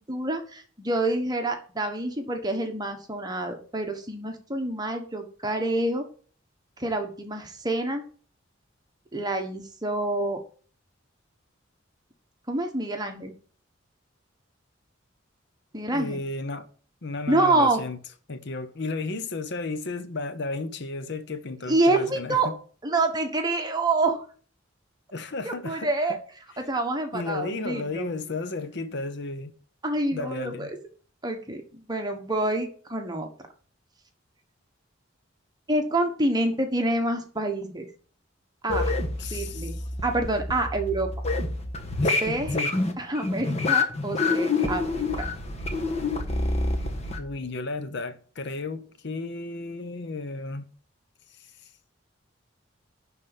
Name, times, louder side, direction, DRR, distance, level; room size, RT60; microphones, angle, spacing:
voice 1, 0.0-6.0 6.8-8.0 9.1-10.4 12.5-13.3 15.7-16.2 17.3-17.8 21.7-22.5 22.8-24.2 25.4-26.2 26.6-28.1 29.8-30.7 31.2-33.3 35.7-37.9 38.6-38.9 39.3-41.1 42.2-42.5 43.0-45.3, right 2 dB, 20° right, 1.3 m, -27 dB
voice 2, 15.9-16.7 17.0-18.0 18.3-22.4 25.1-26.2 27.1-29.5 30.1-30.7 39.2-39.8 42.0-42.8 47.2-50.7 51.4-51.5, left 3 dB, 60° left, 0.9 m, -33 dB
sound 1, 38.7-47.2, left 3 dB, 35° left, 1.4 m, -27 dB
11.0 x 4.1 x 7.1 m
head